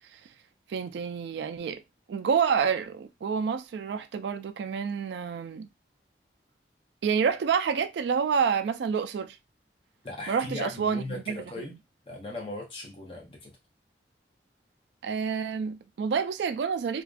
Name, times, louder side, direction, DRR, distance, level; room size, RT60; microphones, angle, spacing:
voice 1, 0.7-1.8 2.1-5.7 7.0-9.4 10.3-11.7 15.0-17.0, right 6 dB, 80° right, 0.3 m, -28 dB
voice 2, 10.0-11.7 12.1-13.5, left 2 dB, 30° left, 0.6 m, -38 dB
2.4 x 2.2 x 2.3 m
head